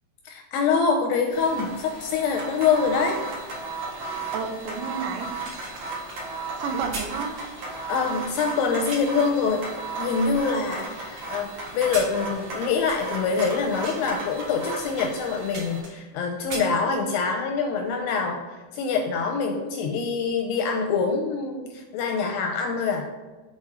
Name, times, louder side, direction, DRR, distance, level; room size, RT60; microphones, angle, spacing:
voice 1, 0.3-3.2 6.7-6.8 7.9-9.6 10.0-23.0, left 5 dB, 80° left, 3 dB, 2.4 m, -25 dB
sound 1, 1.3-15.8, right 3 dB, 60° right, 1.6 m, -35 dB
voice 2, 4.3-5.7 6.6-7.4, right 6 dB, 80° right, 5 dB, 3.1 m, -32 dB
sound 2, 5.3-9.3 9.8-11.2 11.7-13.5 13.8-14.1 14.7-14.8 15.1-16.1 16.4-17.4 17.7-17.9, right 2 dB, 45° right, 2.8 m, -39 dB
7.3 x 4.4 x 4.8 m, 1.2 s
omnidirectional pair, 5.3 m